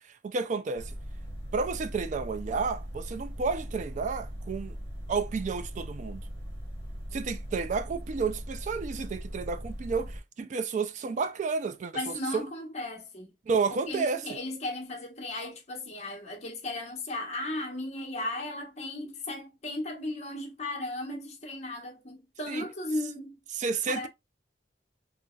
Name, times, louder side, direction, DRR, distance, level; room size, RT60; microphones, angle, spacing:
voice 1, 0.1-0.9 1.5-4.8 5.1-6.2 7.1-11.9 12.3-12.5 13.5-14.4 22.5-22.6 23.5-24.1, right 4 dB, 45° right, 0.3 m, -31 dB
sound 1, 0.8-10.2, equal, 80° right, 1.2 m, -39 dB
voice 2, 11.9-13.3 13.7-23.4 23.9-24.1, left 2 dB, 40° left, 0.9 m, -36 dB
3.9 x 2.1 x 2.3 m
head